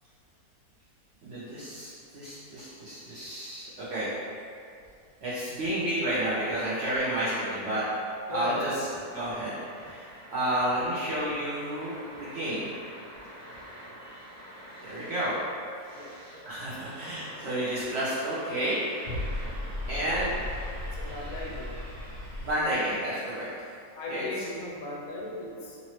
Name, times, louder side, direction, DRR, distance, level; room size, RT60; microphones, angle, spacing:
voice 1, 1.2-4.1 5.2-7.8 8.3-8.9 9.1-9.5 9.8-10.0 10.3-12.7 14.8-15.3 16.5-18.8 19.9-20.3 22.4-23.5 24.1-24.2, right 1 dB, 60° right, -10 dB, 0.7 m, -30 dB
voice 2, 8.3-9.0 12.1-12.2 15.9-16.2 16.6-16.7 20.9-21.8 24.0-25.8, left 1 dB, 75° left, -4 dB, 1.0 m, -37 dB
sound 1, 8.8-22.5, left 1 dB, 85° right, 1.4 m, -41 dB
3.0 x 2.6 x 2.9 m, 2.3 s
omnidirectional pair, 1.6 m